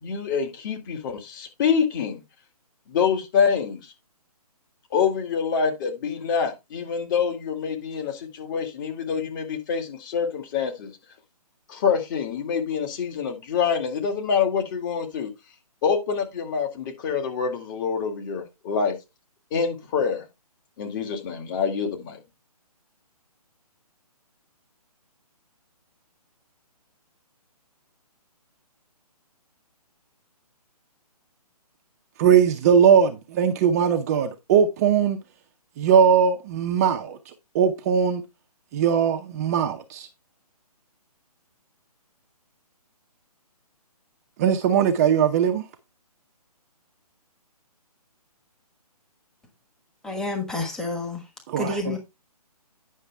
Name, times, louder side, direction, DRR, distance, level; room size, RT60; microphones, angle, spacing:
voice 1, 0.0-2.2 2.9-3.8 4.9-10.9 11.7-15.3 15.8-18.9 19.5-20.2 20.8-22.2, left 6 dB, 30° left, 2.1 m, -26 dB
voice 2, 32.2-35.2 35.8-37.2 37.5-38.2 38.7-40.1 44.4-45.6 51.5-52.0, right 7 dB, 25° right, 0.7 m, -20 dB
voice 3, 50.0-51.2 51.6-52.0, left 2 dB, 5° left, 1.3 m, -29 dB
9.8 x 6.4 x 3.4 m
hypercardioid pair, 150°, 20 cm